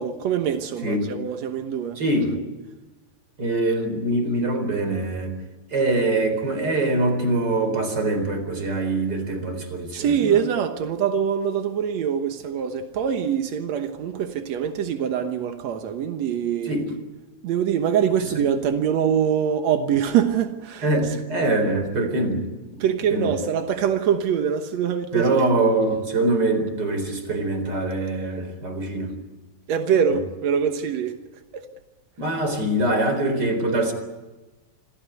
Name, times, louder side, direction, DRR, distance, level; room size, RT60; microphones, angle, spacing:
voice 1, 0.0-2.0 9.9-16.7 17.4-20.9 22.8-25.4 29.7-31.2 31.5-31.6, right 8 dB, 80° right, 1.5 m, -24 dB
voice 2, 2.0-2.3 3.4-5.4 5.7-10.4 16.7-16.9 20.8-22.5 23.1-23.3 25.1-29.1 32.2-33.9, right 2 dB, 25° right, 4.3 m, -23 dB
26.5 x 16.5 x 9.3 m
omnidirectional pair, 4.9 m